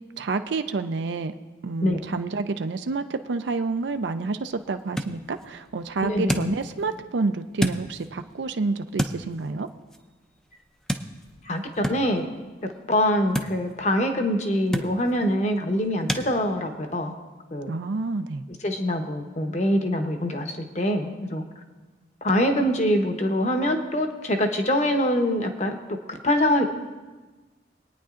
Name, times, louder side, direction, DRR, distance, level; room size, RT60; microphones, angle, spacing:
voice 1, 0.2-1.3 1.6-9.7 17.7-18.4, right 3 dB, 80° right, 8 dB, 0.5 m, -28 dB
sound 1, 3.8-16.3, equal, 5° left, 0.5 m, -34 dB
voice 2, 6.0-6.5 11.4-12.3 12.9-17.1 17.5-17.7 18.6-21.4 22.2-26.6, left 1 dB, 40° left, 5 dB, 1.0 m, -24 dB
23.5 x 9.4 x 2.5 m, 1.3 s
head